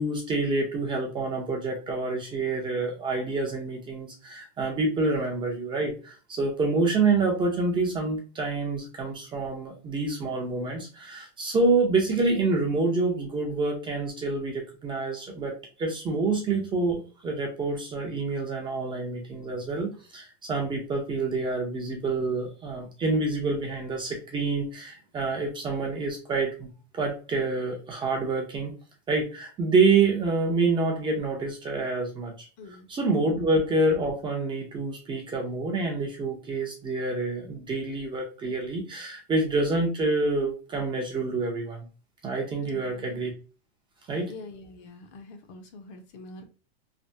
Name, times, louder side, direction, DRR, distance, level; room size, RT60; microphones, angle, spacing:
voice 1, 0.0-28.7 29.1-32.5 32.9-41.9 42.2-43.3 44.1-44.3, right 3 dB, 15° right, 0 dB, 0.5 m, -27 dB
voice 2, 32.6-32.9 33.2-33.3 42.6-43.2 44.3-46.5, left 3 dB, 50° left, 5 dB, 0.7 m, -45 dB
3.3 x 2.1 x 2.6 m, 0.35 s
supercardioid pair, 155°, 31 cm